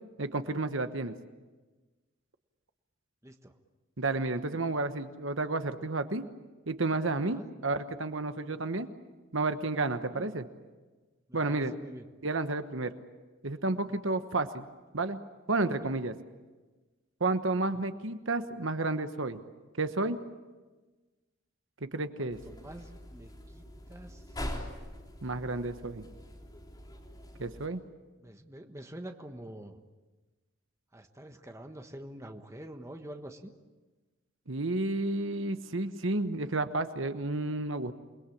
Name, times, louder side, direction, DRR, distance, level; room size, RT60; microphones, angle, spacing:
voice 1, 0.2-1.1 4.0-6.2 6.7-8.9 9.3-10.5 11.3-11.7 12.2-12.9 13.4-14.7 14.9-15.2 15.5-16.1 17.2-19.4 19.8-20.2 21.8-22.4 25.2-26.1 27.4-27.8 34.5-37.9, right 2 dB, 60° right, 9 dB, 1.2 m, -31 dB
voice 2, 3.2-3.5 7.3-7.5 10.1-10.3 11.3-12.0 15.7-15.9 22.2-24.2 28.2-29.8 30.9-33.5, right 1 dB, 15° right, 5 dB, 1.3 m, -46 dB
sound 1, 22.3-27.7, left 1 dB, 20° left, 3.7 m, -43 dB
28.5 x 21.0 x 8.6 m, 1.3 s
head